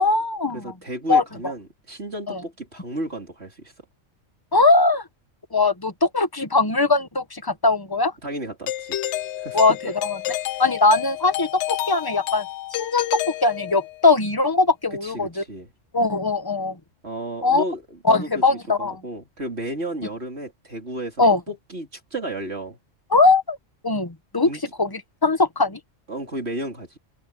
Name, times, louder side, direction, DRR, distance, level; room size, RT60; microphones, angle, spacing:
voice 1, 0.0-0.7 1.1-1.2 2.3-2.4 4.5-5.0 5.5-8.1 9.5-9.7 10.0-10.2 10.6-12.4 12.7-13.1 13.4-15.4 15.9-16.8 17.4-17.6 18.1-19.0 21.2-21.4 23.1-23.6 23.8-24.5 24.8-25.8, left 3 dB, 20° left, 1.3 m, -20 dB
voice 2, 0.5-3.7 8.2-9.0 9.4-9.9 10.3-10.4 14.9-15.7 17.0-22.8 24.4-24.6 26.1-27.0, right 1 dB, 55° right, 4.2 m, -33 dB
Doorbell, 8.7-14.1, left 14 dB, 70° left, 0.8 m, -29 dB
omnidirectional pair, 1.3 m